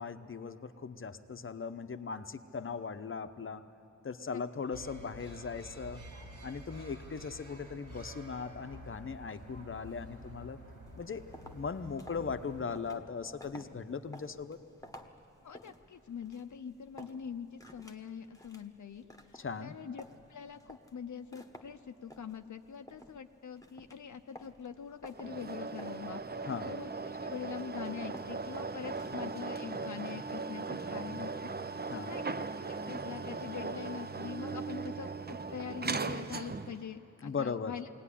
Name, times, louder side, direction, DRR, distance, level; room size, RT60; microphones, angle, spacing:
voice 1, 0.0-3.6 4.0-6.0 6.4-10.6 11.0-11.2 11.5-14.6 19.3-19.8 26.4-26.7 31.9-32.2 37.2-37.7, left 5 dB, 40° left, 10 dB, 0.8 m, -39 dB
sound 1, 4.7-12.6, equal, 80° right, 3.2 m, -50 dB
sound 2, 10.9-29.3, left 1 dB, 10° left, 1.1 m, -55 dB
voice 2, 15.4-20.0 20.3-37.9, left 7 dB, 70° left, 6 dB, 0.6 m, -44 dB
sound 3, 25.1-36.9, right 4 dB, 30° right, 0.6 m, -38 dB
21.5 x 17.5 x 10.0 m, 2.9 s
wide cardioid pair, 115°, 31 cm